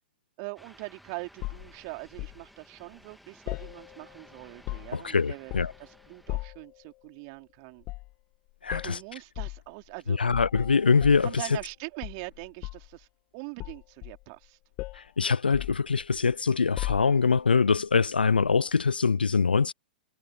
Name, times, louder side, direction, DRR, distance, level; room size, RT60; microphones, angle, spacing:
voice 1, 0.4-7.9 8.7-10.3 11.2-13.1 13.3-14.6, right 37 dB, 40° right, 3.1 m, -42 dB
sound 1, 0.6-6.4, equal, ahead, 3.0 m, -56 dB
sound 2, 1.4-2.4 3.5-4.2 4.5-5.1 5.5-5.9 6.3-6.7 7.8-8.1 8.7-8.9 9.4-9.6 10.3-11.7 12.0-13.0 13.6-14.5 14.8-15.1 15.5-16.3 16.8-17.4 18.3-18.5, left 22 dB, 35° left, 1.8 m, -37 dB
voice 2, 4.9-5.7 8.6-9.0 10.1-11.6 14.9-19.7, left 5 dB, 75° left, 0.7 m, -24 dB
figure-of-eight pair, 110°, 5 cm